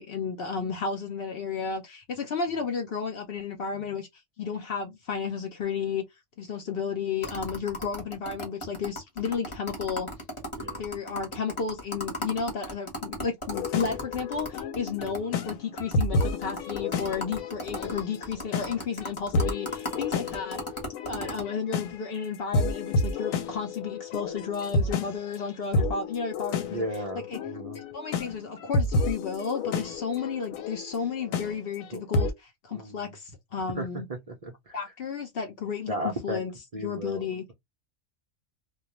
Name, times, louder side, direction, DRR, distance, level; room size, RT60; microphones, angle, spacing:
voice 1, 0.0-4.1 4.4-6.0 6.4-10.1 10.8-20.6 21.1-26.9 27.1-27.4 27.7-34.1 34.7-36.5 36.8-37.4, left 6 dB, 60° left, 0.6 m, -33 dB
sound 1, 7.2-15.2 15.5-15.6 15.8-21.4, left 1 dB, 25° left, 0.9 m, -35 dB
voice 2, 10.5-10.8 15.0-15.3 21.1-21.4 26.6-27.8 31.9-32.0 32.7-33.1 33.8-34.8 35.9-36.4 36.7-37.5, right 1 dB, 60° right, 0.4 m, -36 dB
sound 2, 13.5-32.3, left 2 dB, 90° left, 1.0 m, -31 dB
2.3 x 2.1 x 2.8 m
omnidirectional pair, 1.4 m